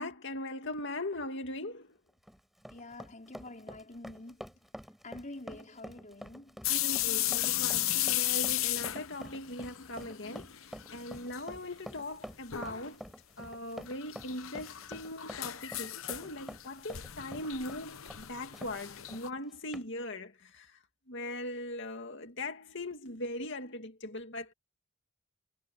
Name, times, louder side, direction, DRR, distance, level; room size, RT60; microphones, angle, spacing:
voice 1, 0.0-2.0 6.7-20.8 21.1-24.5, left 1 dB, 60° left, 2.4 m, -40 dB
Run, 2.1-18.7 19.1-19.2 19.7-19.9, equal, ahead, 5.3 m, -47 dB
voice 2, 2.7-4.6 5.0-6.7, left 2 dB, 35° left, 4.8 m, -47 dB
sound 1, 6.6-10.5 10.7-11.4 11.7-11.8 12.5-12.9 13.9-19.3, left 14 dB, 75° left, 0.9 m, -34 dB
head